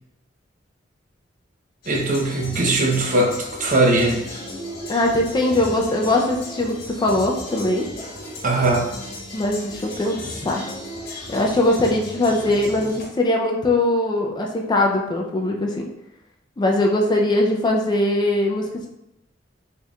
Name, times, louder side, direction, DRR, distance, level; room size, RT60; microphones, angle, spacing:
sound 1, 1.8-13.0, left 1 dB, 60° left, 1.2 m, -35 dB
voice 1, 1.9-4.4 8.4-8.9, right 2 dB, 45° right, 1 dB, 0.7 m, -20 dB
voice 2, 4.9-7.9 9.3-10.6 11.3-15.9 16.6-18.7, left 1 dB, 25° left, 1 dB, 0.4 m, -21 dB
4.4 x 3.5 x 2.3 m, 0.85 s
head